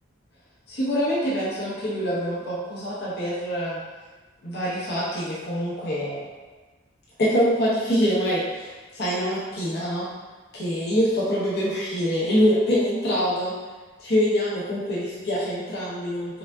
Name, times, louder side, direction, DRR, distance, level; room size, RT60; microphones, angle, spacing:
voice 1, 0.7-3.8 4.4-6.2 7.2-10.1 10.5-13.5 14.0-16.4, equal, 55° left, -8 dB, 0.9 m, -25 dB
5.0 x 2.6 x 3.5 m, 1.3 s
head